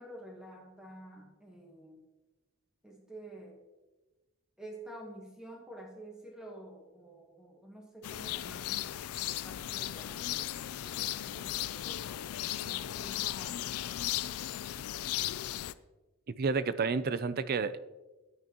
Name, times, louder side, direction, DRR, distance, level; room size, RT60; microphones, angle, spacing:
voice 1, 0.0-2.0 2.8-3.6 4.6-8.9 9.3-12.2 12.6-13.7, right 1 dB, 5° right, -1 dB, 1.3 m, -49 dB
sound 1, 8.0-15.7, left 13 dB, 90° left, 0.4 m, -36 dB
voice 2, 16.4-17.8, right 4 dB, 45° right, 14 dB, 0.5 m, -30 dB
13.5 x 9.6 x 2.9 m, 1.1 s
head